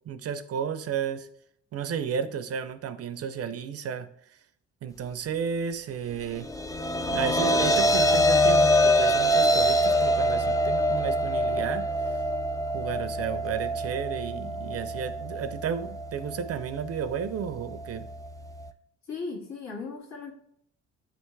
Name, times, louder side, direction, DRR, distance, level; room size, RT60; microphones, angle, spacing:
voice 1, 0.1-1.3 1.7-4.1 4.8-6.5 7.1-11.9 12.7-18.1, right 7 dB, 55° right, 12 dB, 0.5 m, -33 dB
sound 1, 6.4-18.7, equal, 10° left, 0.3 m, -25 dB
voice 2, 19.1-20.3, left 4 dB, 60° left, -2 dB, 1.8 m, -36 dB
8.9 x 3.4 x 3.2 m, 0.69 s
cardioid pair, 90°, 30 cm